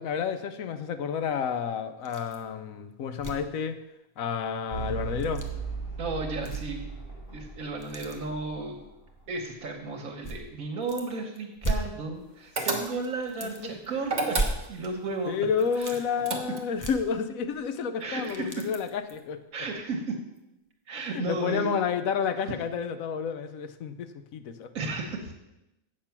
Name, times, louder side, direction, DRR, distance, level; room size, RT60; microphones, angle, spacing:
voice 1, 0.0-3.8 4.2-5.4 12.6-12.7 13.4-13.7 15.3-19.4 21.1-24.7, left 6 dB, 75° left, 10 dB, 1.1 m, -30 dB
sound 1, 2.0-2.5 2.8-2.9 3.1-3.5 5.0-5.5 6.3-7.0 7.3-8.2 9.1-9.2 10.2-11.1 11.3-12.5 12.8-12.9 13.3-13.9 14.3-15.1 15.5-16.0 16.8-17.7 18.0-19.2 19.7-19.8 20.4-20.5, right 2 dB, 15° left, 0.8 m, -35 dB
sound 2, 4.7-9.2, right 5 dB, 35° left, 3.9 m, -37 dB
voice 2, 6.0-6.8 7.3-8.8 9.3-15.4 15.7-16.0 18.0-18.6 19.5-20.2 20.9-21.8 24.7-25.3, right 3 dB, 75° right, 1 dB, 1.5 m, -34 dB
sound 3, 12.6-13.2 14.0-14.9 15.8-16.8, right 2 dB, 35° right, 1.1 m, -31 dB
8.2 x 6.4 x 5.8 m, 0.92 s
omnidirectional pair, 1.5 m